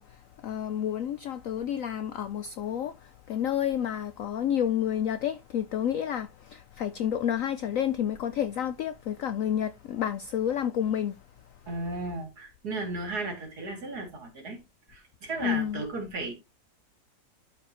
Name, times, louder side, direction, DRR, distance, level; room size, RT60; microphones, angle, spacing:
voice 1, 0.0-11.2 15.4-15.8, left 9 dB, 75° left, 0.7 m, -30 dB
voice 2, 11.7-14.6 14.9-16.4, right 2 dB, 60° right, 3.2 m, -35 dB
12.5 x 4.8 x 3.0 m
omnidirectional pair, 1.9 m